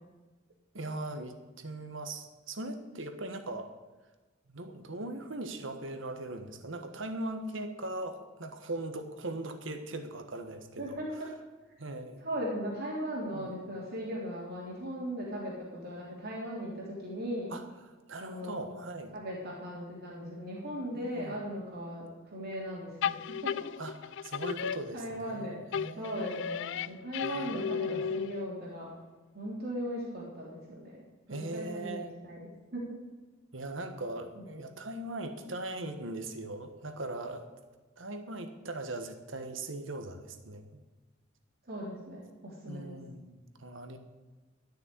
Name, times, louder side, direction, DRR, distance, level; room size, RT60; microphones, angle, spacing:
voice 1, 0.7-3.7 4.5-11.0 11.8-12.3 13.3-13.6 17.5-17.6 18.1-19.2 20.9-21.4 23.8-26.6 27.2-28.1 31.3-32.1 33.5-37.5 38.0-40.8 42.7-44.0, right 2 dB, 70° right, 7 dB, 1.4 m, -40 dB
voice 2, 10.8-11.3 12.2-17.5 18.2-18.7 19.1-23.7 24.9-25.6 25.9-28.9 29.3-31.0 31.3-33.0 34.3-34.5 41.6-43.0, equal, 55° right, -4 dB, 3.3 m, -38 dB
sound 1, 23.0-25.4 25.7-28.6, left 7 dB, 65° left, 0.4 m, -35 dB
12.5 x 6.6 x 9.7 m, 1.3 s
head